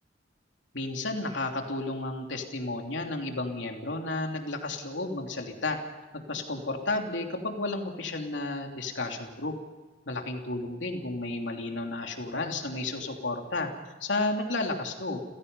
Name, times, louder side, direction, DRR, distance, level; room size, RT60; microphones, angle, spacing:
voice 1, 0.7-5.8 6.1-9.6 10.1-15.2, left 2 dB, 80° left, 3 dB, 3.1 m, -32 dB
30.0 x 16.5 x 5.5 m, 1.2 s
head